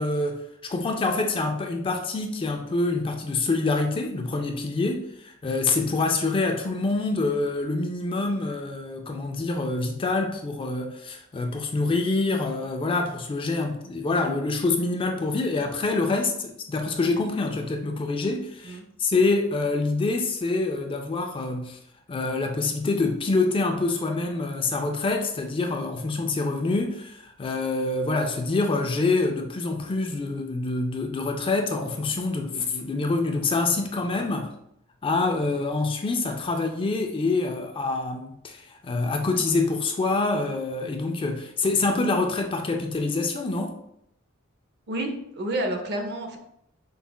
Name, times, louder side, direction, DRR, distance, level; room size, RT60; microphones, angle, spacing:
voice 1, 0.0-21.8 22.1-34.5 35.0-43.7, left 3 dB, 25° left, 3 dB, 0.3 m, -26 dB
voice 2, 44.9-46.4, right 1 dB, 50° right, 4 dB, 0.6 m, -29 dB
5.3 x 2.3 x 2.2 m, 0.76 s
head